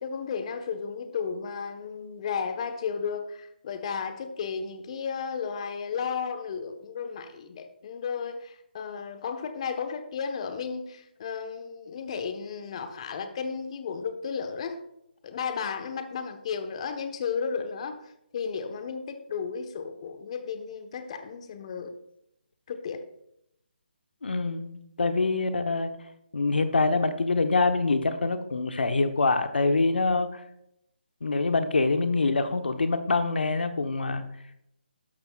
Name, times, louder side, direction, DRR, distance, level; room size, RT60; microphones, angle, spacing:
voice 1, 0.0-14.8 15.2-18.0 18.3-21.9 22.7-23.0, left 6 dB, 35° left, 8 dB, 1.1 m, -34 dB
voice 2, 24.2-25.9 26.3-30.4 31.2-34.2, left 3 dB, 70° left, 8 dB, 1.0 m, -25 dB
13.0 x 11.5 x 2.4 m, 0.79 s
figure-of-eight pair, 155°, 6 cm